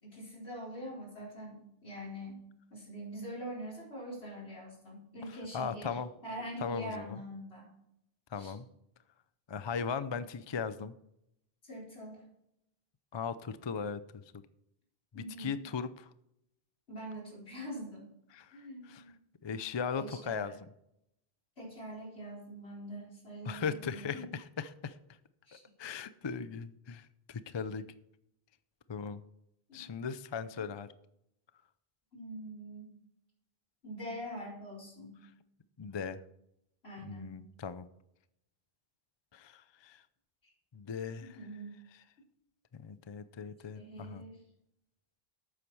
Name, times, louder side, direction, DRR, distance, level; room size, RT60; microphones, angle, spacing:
voice 1, 0.0-2.4 2.7-7.7 8.4-8.5 11.6-12.2 15.1-15.6 16.9-18.1 18.5-19.1 20.0-20.5 21.6-24.3 25.5-25.7 29.7-29.9 32.1-33.0 33.8-35.2 36.8-37.4 41.3-41.7 43.7-44.4, equal, 85° left, -3 dB, 4.5 m, -44 dB
voice 2, 5.5-6.1 6.6-7.2 8.3-8.7 9.5-10.9 13.1-14.0 15.1-16.0 18.3-18.5 18.9-19.0 19.4-20.5 23.5-24.9 25.8-27.8 28.9-29.2 29.7-30.9 35.8-36.2 37.0-37.8 39.3-40.0 40.7-41.4 42.7-44.2, left 6 dB, 35° left, 13 dB, 0.5 m, -38 dB
12.5 x 8.5 x 4.7 m, 0.80 s
omnidirectional pair, 1.0 m